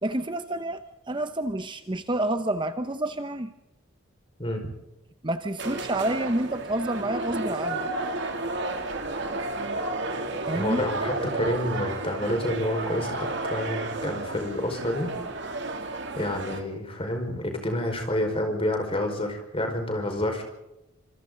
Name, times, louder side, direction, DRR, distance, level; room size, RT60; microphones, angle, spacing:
voice 1, 0.0-3.5 5.2-7.8 10.5-10.8, right 1 dB, 20° right, 9 dB, 0.8 m, -29 dB
sound 1, 5.6-16.6, right 2 dB, 55° right, 2.9 m, -32 dB
voice 2, 10.5-15.1 16.2-20.4, left 1 dB, 25° left, 4 dB, 5.2 m, -28 dB
27.5 x 27.0 x 4.0 m, 0.92 s
head